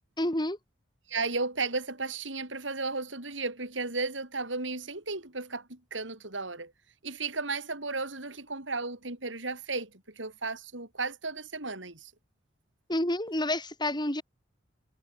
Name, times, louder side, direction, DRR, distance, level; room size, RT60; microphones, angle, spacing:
voice 1, 0.2-0.6 12.9-14.2, left 1 dB, 25° left, 5.2 m, -29 dB
voice 2, 1.1-6.7 7.0-9.9 10.2-12.1, right 3 dB, 75° right, 6.3 m, -34 dB
head